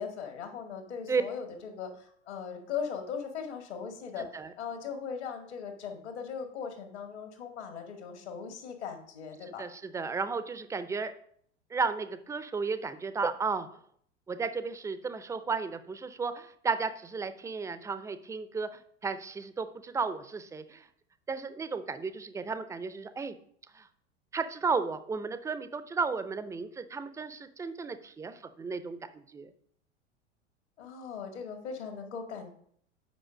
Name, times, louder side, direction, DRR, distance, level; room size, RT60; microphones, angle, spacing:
voice 1, 0.0-9.6 30.8-32.5, left 6 dB, 70° left, 4 dB, 2.0 m, -39 dB
voice 2, 4.2-4.5 9.6-11.1 11.7-13.7 14.3-18.7 19.0-20.9 21.3-23.3 23.7-23.9 24.3-29.5, right 4 dB, 10° right, 12 dB, 0.5 m, -33 dB
8.2 x 5.4 x 5.2 m, 0.63 s
figure-of-eight pair, 85°, 35 cm